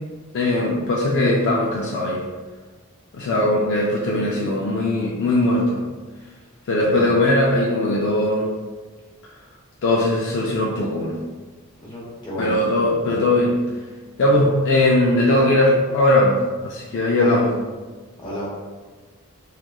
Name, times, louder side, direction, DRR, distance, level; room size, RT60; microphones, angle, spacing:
voice 1, 0.3-2.2 3.1-5.8 6.7-8.5 9.8-11.2 12.4-13.6 14.2-16.4 16.6-17.5, left 1 dB, 55° left, -3 dB, 0.3 m, -19 dB
voice 2, 6.7-7.1 11.8-12.6 13.0-13.2 14.3-14.5 15.3-15.7 17.2-17.4 18.2-18.5, equal, 20° left, -7 dB, 0.7 m, -32 dB
2.9 x 2.3 x 2.2 m, 1.4 s
head